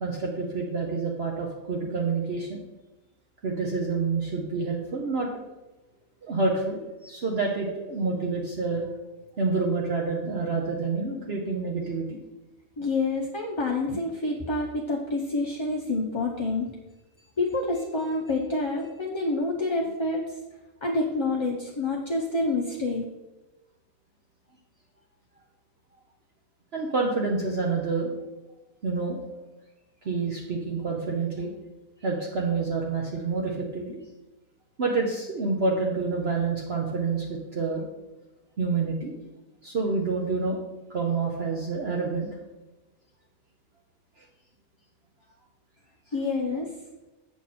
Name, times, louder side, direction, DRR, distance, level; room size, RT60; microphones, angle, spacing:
voice 1, 0.0-2.6 3.4-5.3 6.2-8.8 9.4-12.2 26.7-28.1 28.8-29.2 30.0-31.5 32.0-34.0 34.8-37.8 38.6-39.1 39.6-40.6 40.9-42.3, right 4 dB, 55° right, -1 dB, 1.1 m, -28 dB
voice 2, 12.8-16.7 17.4-20.3 20.8-23.0 46.1-46.7, left 2 dB, 25° left, -2 dB, 0.6 m, -27 dB
8.3 x 6.0 x 4.2 m, 1.1 s
omnidirectional pair, 1.4 m